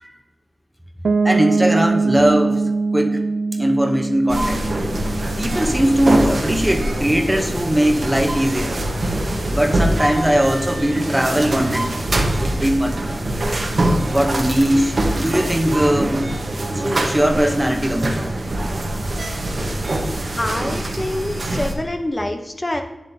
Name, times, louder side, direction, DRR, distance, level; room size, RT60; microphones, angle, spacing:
Piano, 1.0-6.7, right 3 dB, 90° right, 0.4 m, -23 dB
voice 1, 1.2-2.6 2.9-3.2 3.5-4.7 5.4-8.7 9.5-12.0 12.4-13.1 14.1-16.3 16.7-18.2, equal, 10° right, 5 dB, 0.7 m, -19 dB
Wind instrument woodwind instrument, 4.2-10.8, left 4 dB, 70° left, 1.0 m, -39 dB
sound 1, 4.3-21.7, right 1 dB, 55° right, 1.0 m, -23 dB
voice 2, 20.4-22.8, left 1 dB, 25° left, 4 dB, 0.8 m, -26 dB
9.4 x 7.5 x 2.7 m, 1.0 s
wide cardioid pair, 90°, 0 cm